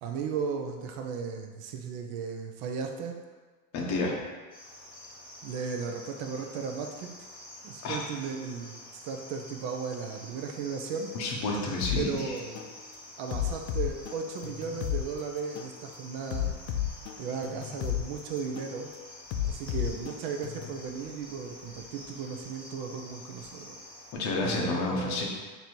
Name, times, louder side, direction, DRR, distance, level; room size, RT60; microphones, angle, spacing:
voice 1, 0.0-3.2 5.4-7.1 7.6-8.8 9.0-11.1 11.9-12.6 13.2-16.5 17.2-18.9 19.4-23.8 24.4-25.3, right 5 dB, 50° right, 4 dB, 0.5 m, -35 dB
voice 2, 3.7-4.2 7.8-8.0 11.1-12.3 24.1-25.3, left 2 dB, 35° left, -1 dB, 0.7 m, -30 dB
Cricket, 4.5-24.2, left 1 dB, 10° left, 1.2 m, -48 dB
sound 1, 11.8-12.0 12.6-12.8 13.3-15.0 15.6-15.8 16.3-18.0 18.6-18.8 19.3-20.8, left 11 dB, 75° left, 0.6 m, -32 dB
3.1 x 2.7 x 4.2 m, 1.4 s
supercardioid pair, 145°, 49 cm